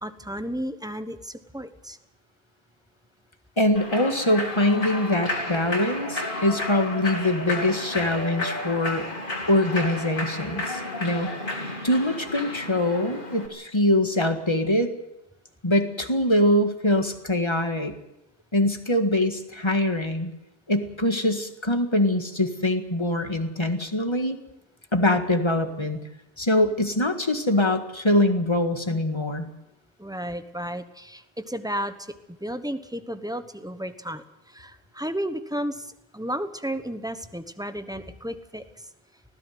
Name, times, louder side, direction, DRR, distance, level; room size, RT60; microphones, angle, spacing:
voice 1, 0.0-2.0 30.0-31.9 32.3-38.6, equal, 5° right, 10 dB, 1.1 m, -33 dB
voice 2, 3.6-9.1 9.5-11.3 11.8-14.9 15.6-17.9 18.5-20.3 20.7-24.4 24.9-26.0 26.4-29.5, left 1 dB, 25° left, 7 dB, 1.8 m, -23 dB
Human voice / Clapping / Cheering, 3.8-13.5, left 1 dB, 55° left, 3.5 m, -32 dB
19.5 x 15.0 x 9.4 m, 0.89 s
omnidirectional pair, 1.1 m